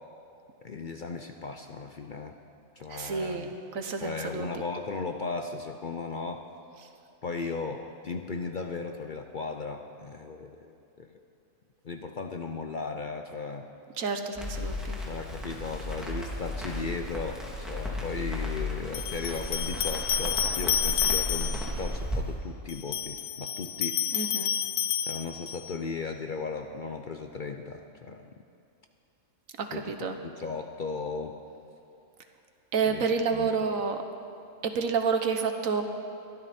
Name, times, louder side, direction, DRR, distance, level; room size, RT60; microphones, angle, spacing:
voice 1, 0.6-2.4 2.7-3.5 4.0-6.5 7.2-11.1 11.8-13.7 15.1-24.0 25.0-28.3 29.7-30.0 30.2-31.4 32.8-33.1 33.3-33.7, left 4 dB, 50° left, 5 dB, 0.6 m, -36 dB
voice 2, 2.9-4.5 14.0-15.0 24.1-24.5 29.6-30.2 32.7-34.0 34.6-35.8, right 5 dB, 75° right, 6 dB, 1.5 m, -29 dB
Crackle, 14.4-22.2, left 1 dB, ahead, 2.5 m, -34 dB
sound 1, 17.6-17.7 18.9-21.8 22.7-25.7, left 9 dB, 65° left, 1.0 m, -30 dB
23.0 x 13.0 x 4.3 m, 2.6 s
omnidirectional pair, 1.4 m